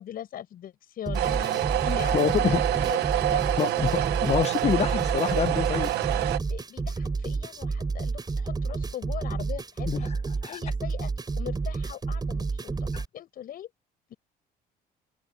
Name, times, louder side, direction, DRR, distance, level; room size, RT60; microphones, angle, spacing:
voice 1, 0.0-1.6 1.9-2.6 2.8-3.9 6.5-10.1 10.5-13.7 14.1-14.2, left 11 dB, 60° left, 8.0 m, -41 dB
sound 1, 1.1-13.1, right 4 dB, 25° right, 7.3 m, -30 dB
sound 2, 1.1-6.4, right 14 dB, 80° right, 1.0 m, -27 dB
voice 2, 1.9-2.8 3.6-5.9 9.9-10.0 10.4-10.6 12.9-13.0, left 8 dB, 40° left, 1.2 m, -27 dB
open air
cardioid pair, 110°, 17 cm